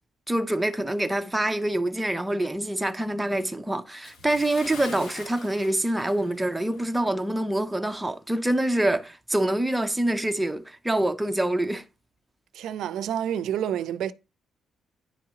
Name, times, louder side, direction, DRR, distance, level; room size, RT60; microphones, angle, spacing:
voice 1, 0.3-11.8, right 1 dB, 5° right, 0.4 m, -26 dB
Bathtub (filling or washing) / Splash splatter, 4.0-6.9 7.2-7.4 8.0-8.1, left 4 dB, 75° left, 1.4 m, -44 dB
voice 2, 12.5-14.1, right 9 dB, 70° right, 0.4 m, -28 dB
10.0 x 3.8 x 2.8 m
cardioid pair, 165°, 0 cm